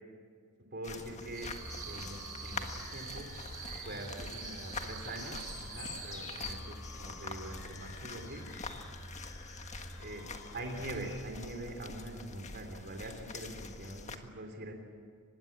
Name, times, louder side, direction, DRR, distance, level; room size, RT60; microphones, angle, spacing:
voice 1, 0.7-1.5 1.8-3.3 3.8-8.5 10.0-10.3 10.5-14.7, right 1 dB, 50° right, 3 dB, 3.2 m, -43 dB
sound 1, 0.8-14.2, left 4 dB, 30° left, 1.6 m, -45 dB
sound 2, 1.3-6.6, right 8 dB, 70° right, 7.2 m, -46 dB
sound 3, 1.6-11.2, left 1 dB, 65° left, 6.8 m, -49 dB
24.5 x 21.0 x 8.9 m, 2.2 s
head